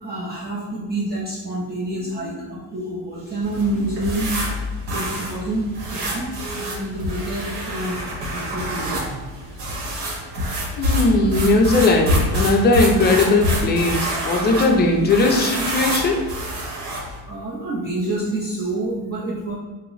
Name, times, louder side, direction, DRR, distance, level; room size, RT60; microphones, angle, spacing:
voice 1, 0.0-4.4 4.7-9.2 10.7-10.8 17.3-19.6, right 2 dB, 25° right, -7 dB, 0.5 m, -28 dB
sound 1, 3.4-17.2, equal, 80° right, 0.9 m, -26 dB
voice 2, 10.8-16.2, left 2 dB, 25° left, 1 dB, 0.5 m, -18 dB
2.9 x 2.0 x 3.8 m, 1.2 s
cardioid pair, 120°, 40 cm